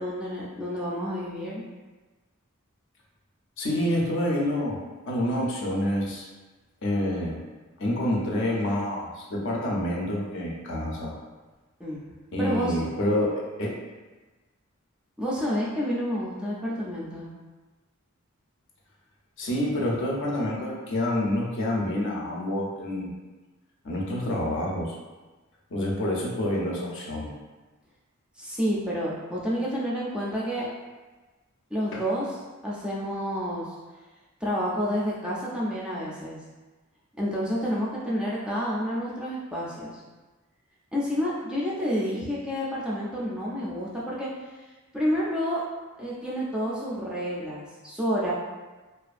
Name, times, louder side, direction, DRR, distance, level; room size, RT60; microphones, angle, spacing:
voice 1, 0.0-1.6 11.8-12.1 12.4-12.8 15.2-17.3 28.4-30.7 31.7-32.4 32.6-33.8 34.4-36.4 37.2-40.0 40.9-44.3 44.9-45.6 46.0-48.3, equal, 5° right, -7 dB, 0.3 m, -29 dB
voice 2, 3.6-6.3 6.8-7.4 7.8-11.1 12.3-13.8 19.4-23.1 23.8-25.0 25.7-27.3 31.9-32.0, left 1 dB, 60° left, -2 dB, 0.5 m, -27 dB
2.5 x 2.3 x 2.4 m, 1.2 s
head